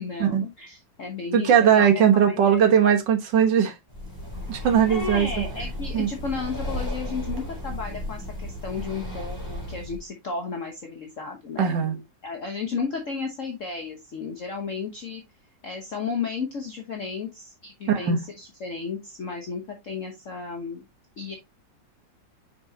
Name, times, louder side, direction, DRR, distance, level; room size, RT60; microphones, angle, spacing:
voice 1, 0.0-2.7 4.5-15.2 15.6-20.8 21.2-21.4, left 5 dB, 50° left, 1.3 m, -34 dB
voice 2, 1.3-3.7 4.5-5.3 5.9-6.1 11.6-12.0 17.9-18.2, right 8 dB, 70° right, 1.9 m, -19 dB
Breathing, 3.9-10.0, left 1 dB, 10° right, 3.9 m, -34 dB
6.1 x 6.0 x 2.7 m
omnidirectional pair, 2.0 m